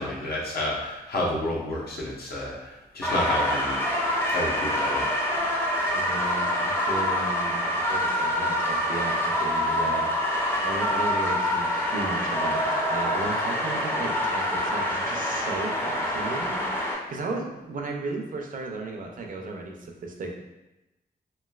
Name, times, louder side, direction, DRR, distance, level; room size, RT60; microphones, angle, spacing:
voice 1, 0.0-3.8 4.3-5.1, left 1 dB, 70° left, -4 dB, 0.8 m, -30 dB
sound 1, 3.0-16.9, left 1 dB, 15° left, 0.4 m, -26 dB
voice 2, 5.9-20.3, right 3 dB, 55° right, 1 dB, 0.5 m, -35 dB
3.0 x 2.8 x 2.3 m, 0.98 s
wide cardioid pair, 150°, 17 cm